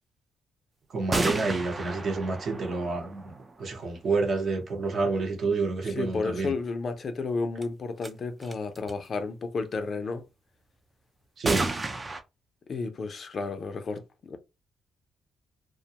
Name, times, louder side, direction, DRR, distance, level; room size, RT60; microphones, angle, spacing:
voice 1, 0.9-6.5 11.4-11.7, right 3 dB, 50° right, 0.9 m, -29 dB
sound 1, 1.1-3.9 7.6-7.7 8.0-8.1 8.4-8.9 11.5-12.2, right 2 dB, 20° right, 0.4 m, -31 dB
voice 2, 5.9-10.2 12.7-14.0 14.3-14.4, left 4 dB, 45° left, 0.5 m, -32 dB
2.4 x 2.1 x 2.8 m
cardioid pair, 90°, 0 cm